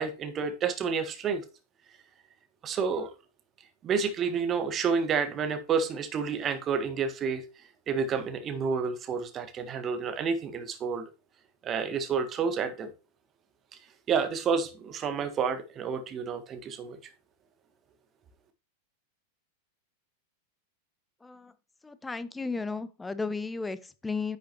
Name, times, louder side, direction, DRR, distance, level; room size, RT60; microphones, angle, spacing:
voice 1, 0.0-1.4 2.6-3.1 3.8-7.4 7.9-11.1 11.6-12.9 14.1-17.0, right 5 dB, 25° right, 1.5 m, -29 dB
voice 2, 21.2-21.5 21.8-24.4, left 4 dB, 10° left, 0.8 m, -34 dB
10.0 x 6.7 x 2.9 m
figure-of-eight pair, 90°, 0 cm